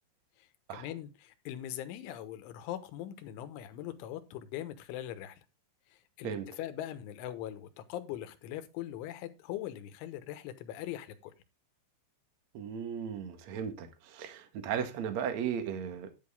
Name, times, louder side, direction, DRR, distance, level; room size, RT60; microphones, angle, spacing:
voice 1, 0.4-5.4 5.9-11.3, left 12 dB, 80° left, 3.5 m, -41 dB
voice 2, 12.5-16.1, right 8 dB, 70° right, 1.6 m, -36 dB
11.0 x 9.4 x 3.7 m
omnidirectional pair, 5.8 m